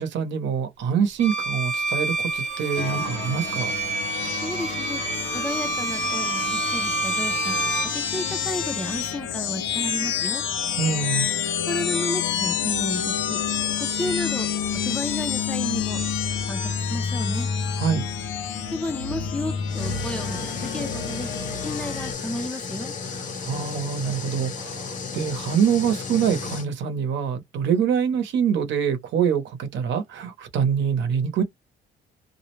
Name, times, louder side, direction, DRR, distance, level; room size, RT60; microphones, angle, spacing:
voice 1, 0.0-3.7 10.8-11.3 17.8-18.0 23.4-31.4, right 7 dB, 75° right, 0.8 m, -25 dB
Bowed string instrument, 1.2-8.0, right 4 dB, 40° right, 0.7 m, -28 dB
sound 1, 2.8-22.1, left 7 dB, 80° left, 0.7 m, -28 dB
voice 2, 4.4-7.5 7.8-10.4 11.7-13.4 13.8-14.5 14.8-16.0 16.5-17.5 18.7-21.3 21.6-22.9, left 1 dB, 5° left, 0.5 m, -32 dB
sound 2, 19.7-26.7, left 5 dB, 40° left, 0.8 m, -34 dB
2.4 x 2.1 x 3.0 m
cardioid pair, 175°, 19 cm